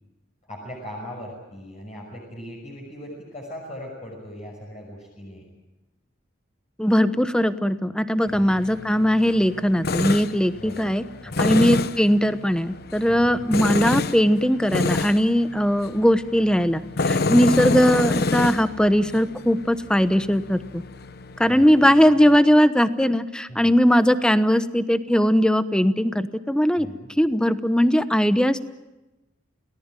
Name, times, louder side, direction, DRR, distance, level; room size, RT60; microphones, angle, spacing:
voice 1, 0.4-5.4 8.3-8.7 10.6-10.9 11.2-11.6 13.1-13.4 21.4-21.8 23.5-23.7 26.7-27.1, equal, 35° left, -2 dB, 6.2 m, -39 dB
voice 2, 6.8-11.0 11.4-20.8 21.4-26.9 27.2-28.7, equal, 5° left, 11 dB, 1.0 m, -19 dB
Tools, 8.3-22.4, left 3 dB, 55° left, 0.8 m, -28 dB
29.0 x 18.5 x 9.1 m, 1.1 s
head